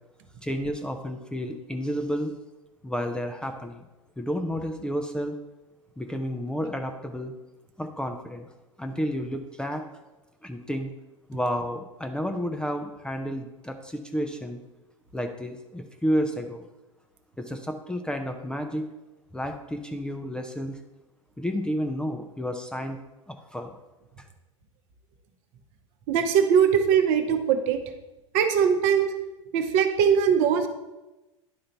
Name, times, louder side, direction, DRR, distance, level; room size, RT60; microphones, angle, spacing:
voice 1, 0.4-2.3 2.8-3.8 4.2-5.4 6.0-7.3 7.8-8.5 8.8-9.9 10.4-10.9 11.3-14.6 15.1-16.6 17.4-18.9 19.3-20.8 21.4-23.0 23.3-23.7 24.2-24.3, equal, 5° left, 5 dB, 0.5 m, -31 dB
voice 2, 26.1-27.8 28.3-29.1 29.5-30.7, right 7 dB, 50° right, 6 dB, 0.9 m, -21 dB
10.5 x 3.8 x 4.4 m, 1.0 s
figure-of-eight pair, 90°, 17 cm